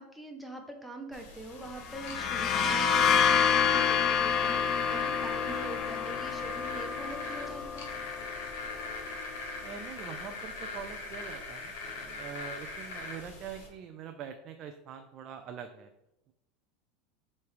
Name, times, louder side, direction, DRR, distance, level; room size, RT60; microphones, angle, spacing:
voice 1, 0.0-7.9, right 2 dB, ahead, 2 dB, 0.6 m, -44 dB
sound 1, 1.1-13.7, left 3 dB, 85° left, 1.5 m, -41 dB
sound 2, 1.8-9.4, left 7 dB, 40° left, 0.3 m, -28 dB
voice 2, 9.6-15.9, right 7 dB, 40° right, 6 dB, 0.3 m, -44 dB
3.3 x 3.2 x 4.8 m, 0.87 s
supercardioid pair, 140°, 0 cm